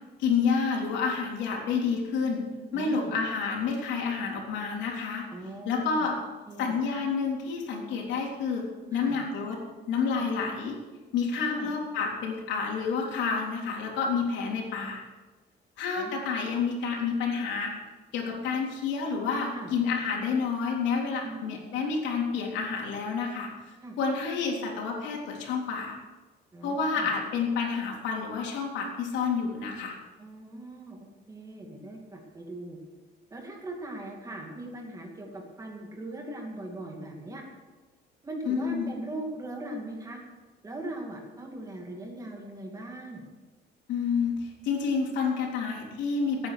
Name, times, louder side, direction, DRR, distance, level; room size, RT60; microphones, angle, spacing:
voice 1, 0.2-2.5 2.7-5.2 5.7-6.2 6.6-9.6 9.9-10.8 11.1-15.0 15.8-17.7 18.1-26.0 26.6-29.9 38.5-38.9 43.9-46.5, left 5 dB, 85° left, 0 dB, 3.5 m, -29 dB
voice 2, 2.7-3.1 5.3-6.1 6.5-6.8 8.9-9.2 10.2-10.5 11.4-11.7 16.0-16.1 19.5-19.7 21.2-21.5 23.8-24.0 26.5-27.1 30.2-32.8 33.3-37.4 38.2-40.2 40.6-43.3, right 1 dB, 20° right, 0 dB, 2.5 m, -40 dB
17.0 x 9.4 x 6.6 m, 1.3 s
cardioid pair, 165°, 18 cm